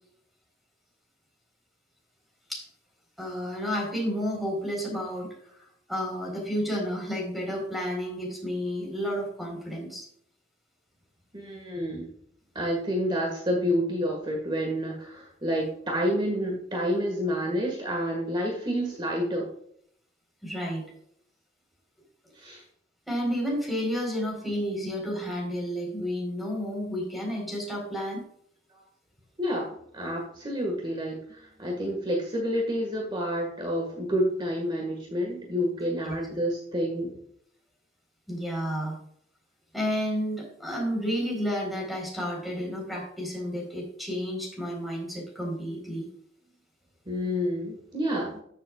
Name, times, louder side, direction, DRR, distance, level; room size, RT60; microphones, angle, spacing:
voice 1, 3.2-10.1 20.4-20.8 23.1-28.2 36.0-36.1 38.3-39.0 39.7-46.1, equal, ahead, -1 dB, 3.9 m, -31 dB
voice 2, 11.3-12.1 12.6-19.5 22.3-22.6 29.4-37.2 47.1-48.4, equal, 25° right, 0 dB, 1.7 m, -29 dB
13.5 x 7.5 x 2.4 m, 0.69 s
head